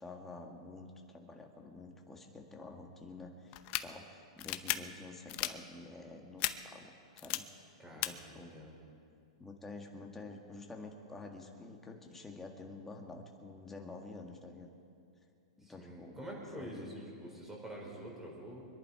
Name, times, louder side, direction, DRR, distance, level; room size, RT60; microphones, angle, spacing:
voice 1, 0.0-3.5 3.8-8.6 9.4-14.7 15.6-16.2 16.6-16.9, left 3 dB, 10° left, 1 dB, 1.8 m, -49 dB
sound 1, 3.5-3.8 4.4-4.7 5.3-5.5 6.4-6.5 7.2-7.4 8.0-8.1, left 17 dB, 40° left, 0.8 m, -33 dB
voice 2, 7.8-8.8 15.6-18.7, equal, 10° right, -2 dB, 4.6 m, -47 dB
25.0 x 11.0 x 4.8 m, 2.4 s
hypercardioid pair, 140°, 3 cm